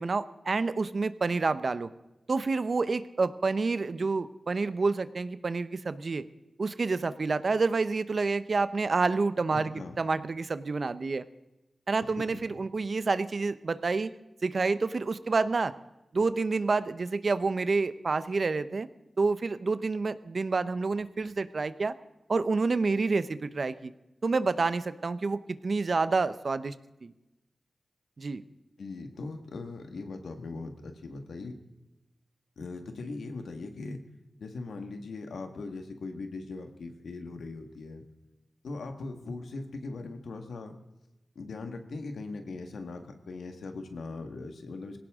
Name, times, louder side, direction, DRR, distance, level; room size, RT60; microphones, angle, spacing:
voice 1, 0.0-1.9 2.3-6.2 6.6-11.2 11.9-14.1 14.4-15.7 16.1-18.9 19.2-21.9 22.3-23.9 24.2-26.7 27.0-27.1 28.2-28.4, right 4 dB, 60° right, 13 dB, 0.8 m, -28 dB
voice 2, 9.5-10.0 12.0-12.4 28.8-31.5 32.6-34.0 34.4-38.0 38.6-40.8 41.3-45.0, left 3 dB, 90° left, 5 dB, 1.7 m, -40 dB
20.0 x 17.5 x 3.7 m, 0.98 s
cardioid pair, 55°, 0 cm